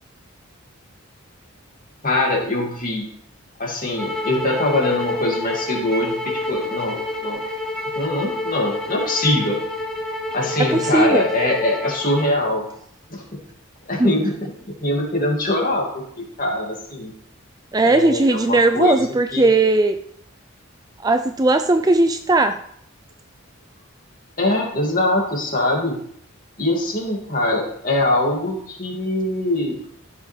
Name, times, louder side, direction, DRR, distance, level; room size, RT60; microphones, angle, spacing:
voice 1, 2.0-3.0 3.6-7.4 8.0-9.6 10.3-12.7 13.1-13.4 13.9-17.1 17.8-19.0 19.3-19.5 24.4-26.0 26.6-29.8, left 1 dB, 40° left, -1 dB, 2.7 m, -23 dB
sound 1, 4.0-12.3, left 2 dB, 5° left, 1.8 m, -28 dB
voice 2, 10.6-11.3 14.0-14.1 17.7-20.0 21.0-22.6, right 2 dB, 15° right, 8 dB, 0.4 m, -17 dB
14.0 x 7.2 x 3.5 m, 0.68 s
head